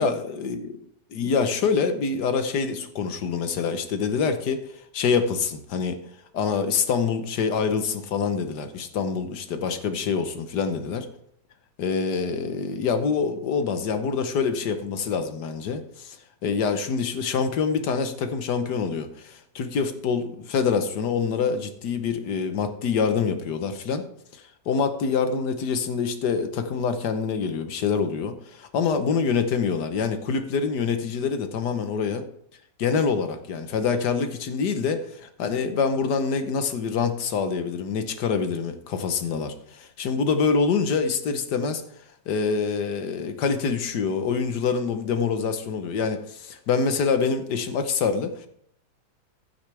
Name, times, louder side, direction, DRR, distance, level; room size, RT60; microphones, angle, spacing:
voice 1, 0.0-0.6 1.1-4.6 4.9-6.0 6.3-11.1 11.8-16.2 16.4-24.0 24.3-24.4 24.7-32.2 32.8-41.8 42.3-48.5, left 5 dB, 75° left, 8 dB, 1.6 m, -25 dB
12.0 x 9.4 x 3.4 m, 0.69 s
omnidirectional pair, 1.8 m